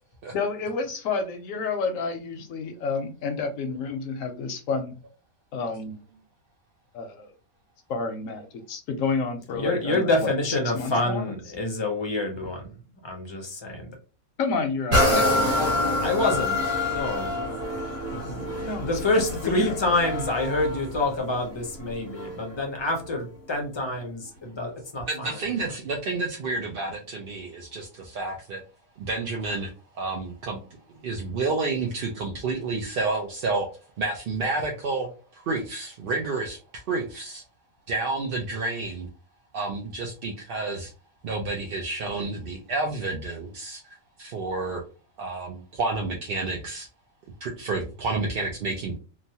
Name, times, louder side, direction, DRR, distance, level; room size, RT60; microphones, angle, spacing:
voice 1, 0.3-4.9 5.5-6.0 6.9-7.3 7.9-11.3 14.4-15.8 18.6-19.8, left 4 dB, 75° left, 7 dB, 1.0 m, -30 dB
voice 2, 9.5-12.7 13.0-13.9 16.0-17.4 18.1-25.1, left 2 dB, 35° left, 1 dB, 0.5 m, -27 dB
sound 1, 14.9-22.5 23.1-23.2, left 1 dB, 40° right, 1.3 m, -27 dB
voice 3, 25.1-28.6 29.0-29.7 29.9-30.6 31.0-33.7 34.0-37.4 37.9-39.1 39.5-40.9 41.2-44.8 45.2-46.9 47.4-49.0, right 3 dB, 60° right, 0 dB, 0.6 m, -30 dB
3.0 x 2.2 x 2.7 m, 0.34 s
omnidirectional pair, 1.4 m